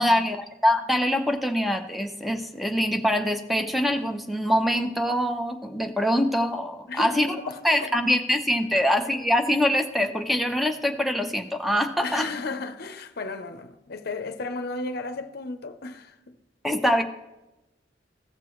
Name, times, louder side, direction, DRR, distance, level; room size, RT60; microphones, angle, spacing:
voice 1, 0.0-7.4 7.6-12.3 16.6-17.0, equal, ahead, 0.7 m, -24 dB
voice 2, 6.9-8.0 8.7-8.8 12.0-16.4, left 3 dB, 55° left, 0.7 m, -34 dB
15.0 x 6.7 x 3.1 m
head